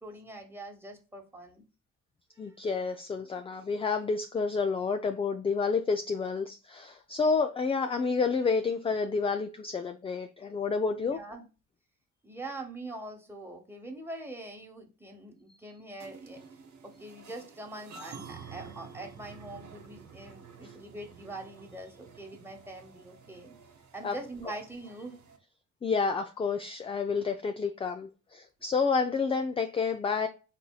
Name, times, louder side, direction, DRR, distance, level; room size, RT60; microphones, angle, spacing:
voice 1, 0.0-1.6 2.3-2.5 10.9-11.5 12.2-23.5 23.9-25.2, right 2 dB, 5° right, 1.3 m, -43 dB
voice 2, 2.4-11.2 24.0-24.1 25.8-30.3, left 5 dB, 15° left, 0.3 m, -29 dB
sound 1, 16.0-25.4, right 5 dB, 45° right, 1.0 m, -50 dB
4.1 x 2.6 x 2.3 m
hypercardioid pair, 45°, 40 cm